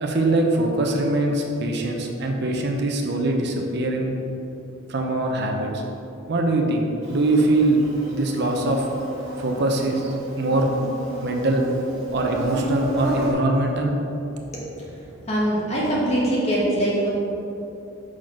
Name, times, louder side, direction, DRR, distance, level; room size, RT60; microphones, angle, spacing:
voice 1, 0.0-4.2 4.9-5.8 6.3-7.8 8.1-8.9 9.4-10.7 11.2-11.6 12.1-13.9, right 2 dB, 55° right, 2 dB, 0.6 m, -22 dB
Insect, 7.0-13.3, right 1 dB, 35° right, 1.5 m, -32 dB
voice 2, 15.2-17.1, right 1 dB, 30° left, -6 dB, 1.5 m, -22 dB
6.0 x 4.3 x 4.7 m, 2.9 s
head